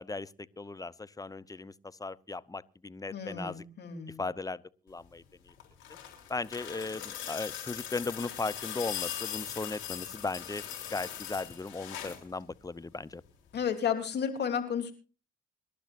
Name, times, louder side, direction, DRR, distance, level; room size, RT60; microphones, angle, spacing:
voice 1, 0.0-3.6 4.2-5.5 6.3-10.6 10.9-13.2, left 3 dB, 20° left, 0.8 m, -37 dB
voice 2, 3.1-4.2 13.5-14.9, left 7 dB, 60° left, 3.3 m, -32 dB
sound 1, 5.5-12.3 13.6-13.7, left 10 dB, 80° left, 3.6 m, -40 dB
26.0 x 12.0 x 2.6 m
hypercardioid pair, 50°, 20 cm